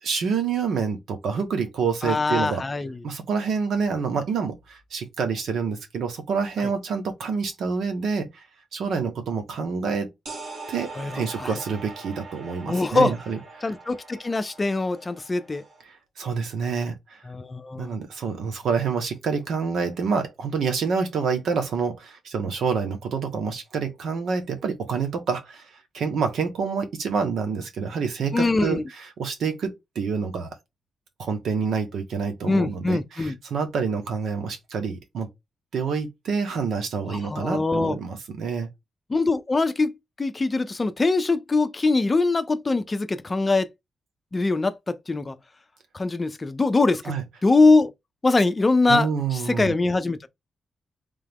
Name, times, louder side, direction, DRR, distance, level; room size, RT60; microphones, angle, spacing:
voice 1, 0.0-2.6 3.0-8.4 8.7-10.1 10.7-13.4 16.2-17.2 17.7-25.7 25.9-28.8 29.2-30.5 31.2-35.3 35.7-38.7 47.1-47.2 48.9-49.7, right 5 dB, 85° right, 1.2 m, -27 dB
voice 2, 2.0-3.0 6.6-6.7 11.0-11.5 12.7-13.1 13.6-15.6 17.3-18.0 28.3-28.8 32.4-33.4 37.1-38.0 39.1-39.9 40.2-43.7 44.3-45.4 45.9-47.0 47.4-47.9 48.2-50.3, left 3 dB, 25° left, 0.6 m, -23 dB
sound 1, 10.3-15.8, right 3 dB, 70° right, 2.5 m, -42 dB
3.7 x 3.5 x 3.6 m
wide cardioid pair, 115°, 0 cm